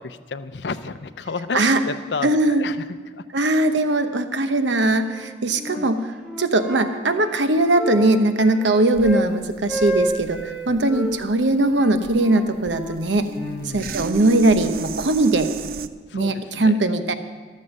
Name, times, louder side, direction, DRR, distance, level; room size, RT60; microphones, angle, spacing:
voice 1, 0.0-3.2 5.7-5.9 10.7-10.9 13.4-14.1 16.1-16.8, left 4 dB, 75° left, 11 dB, 0.6 m, -32 dB
voice 2, 2.2-2.6 3.3-6.0 6.4-13.3 13.7-15.5 16.1-17.1, right 2 dB, 90° right, 9 dB, 0.9 m, -20 dB
Wind instrument woodwind instrument, 5.0-5.9 6.2-9.3 9.6-11.1 11.7-14.2, equal, 10° right, 1.9 m, -30 dB
sound 1, 8.9-15.9, right 4 dB, 55° right, 0.5 m, -33 dB
14.0 x 13.0 x 5.4 m, 1.4 s
head